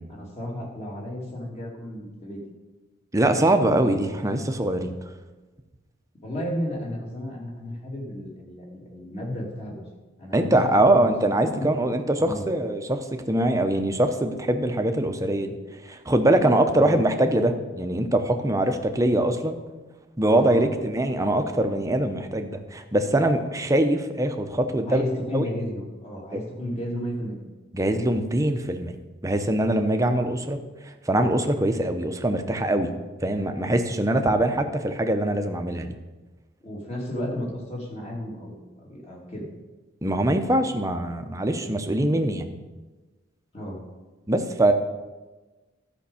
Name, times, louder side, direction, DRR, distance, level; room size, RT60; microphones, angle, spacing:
voice 1, 0.1-2.4 6.2-9.8 10.2-11.7 12.1-12.4 16.7-17.0 20.2-20.8 24.9-27.4 30.2-30.3 36.6-39.5 43.5-43.8, equal, 35° left, -2 dB, 2.7 m, -33 dB
voice 2, 3.1-4.9 10.3-15.6 15.8-19.6 20.2-25.0 25.3-25.5 26.3-26.4 27.7-29.0 29.2-32.9 33.2-35.9 40.0-42.5 44.3-44.7, right 1 dB, 15° right, 6 dB, 0.8 m, -23 dB
13.0 x 5.3 x 7.0 m, 1.2 s
head